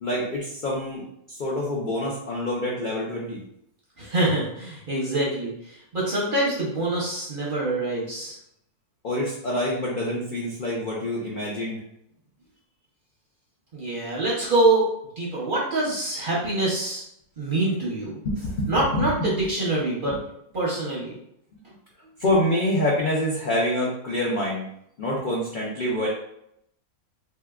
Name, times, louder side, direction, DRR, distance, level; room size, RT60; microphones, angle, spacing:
voice 1, 0.0-3.4 9.0-11.8 18.4-19.3 20.1-20.2 21.5-21.6 22.2-24.7 25.0-26.1, left 1 dB, 65° left, -4 dB, 0.5 m, -26 dB
voice 2, 4.0-8.4 13.7-14.9 15.2-17.0 17.4-18.2 18.7-20.2 20.5-21.2, right 2 dB, 45° right, -5 dB, 0.7 m, -25 dB
3.3 x 2.7 x 2.3 m, 0.75 s
omnidirectional pair, 1.6 m